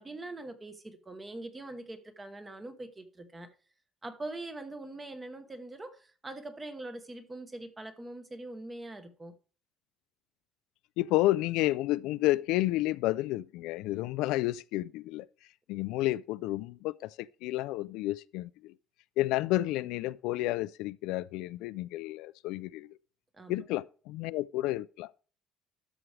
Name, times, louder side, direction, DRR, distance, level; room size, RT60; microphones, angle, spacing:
voice 1, 0.0-3.5 4.0-9.3 23.3-23.6, right 2 dB, 15° right, 1.0 m, -43 dB
voice 2, 11.0-15.3 15.7-18.7 19.2-22.9 23.5-25.1, left 17 dB, 85° left, 0.3 m, -31 dB
12.5 x 6.1 x 3.3 m
cardioid pair, 170°, 0 cm